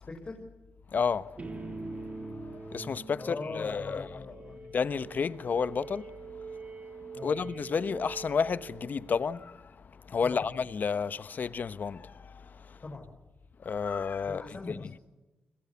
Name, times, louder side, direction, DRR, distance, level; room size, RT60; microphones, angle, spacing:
voice 1, 0.1-0.4 3.1-4.6 7.1-7.4 10.2-10.4 12.8-13.1 14.2-15.0, left 3 dB, 40° left, 5.7 m, -41 dB
voice 2, 0.9-1.4 2.3-4.0 4.7-6.1 6.4-6.5 7.2-9.7 10.0-12.8 13.6-14.4 14.7-14.8, left 6 dB, 55° left, 1.1 m, -31 dB
sound 1, 1.4-9.3, right 3 dB, 35° right, 3.7 m, -44 dB
29.5 x 21.5 x 7.2 m
cardioid pair, 65°, 4 cm